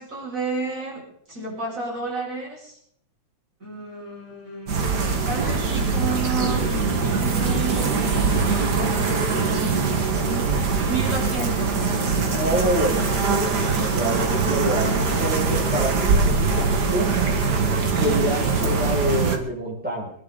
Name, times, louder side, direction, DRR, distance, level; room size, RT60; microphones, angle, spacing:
voice 1, 0.0-2.8 3.6-4.7 5.3-6.8 7.1-8.4 9.3-10.5 10.9-12.2 18.0-18.4, right 3 dB, 25° right, -4 dB, 7.2 m, -32 dB
sound 1, 4.7-19.4, right 4 dB, 40° right, 1.7 m, -22 dB
voice 2, 12.3-17.1 18.0-20.1, right 1 dB, 5° right, -5 dB, 5.9 m, -27 dB
26.0 x 11.0 x 4.1 m, 0.67 s
omnidirectional pair, 3.5 m